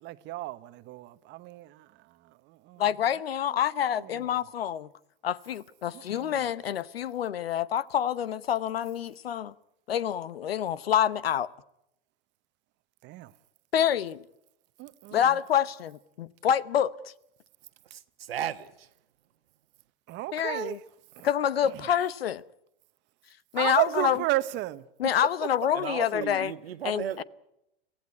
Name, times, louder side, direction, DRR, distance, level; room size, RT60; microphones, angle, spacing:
voice 1, 0.0-1.9 2.5-2.8 4.1-4.3 5.9-6.4 13.0-13.3 14.8-15.3 20.1-20.8 21.2-21.3 23.6-24.8, right 18 dB, 40° right, 1.0 m, -32 dB
voice 2, 2.8-4.9 5.2-9.5 9.9-11.5 13.7-14.2 15.1-16.9 20.3-20.8 21.2-22.4 23.5-24.2 25.0-26.5 26.8-27.2, left 9 dB, 90° left, 0.9 m, -27 dB
voice 3, 17.9-18.9 25.7-27.2, right 10 dB, 90° right, 1.4 m, -35 dB
23.5 x 16.5 x 9.6 m
hypercardioid pair, 115°, 29 cm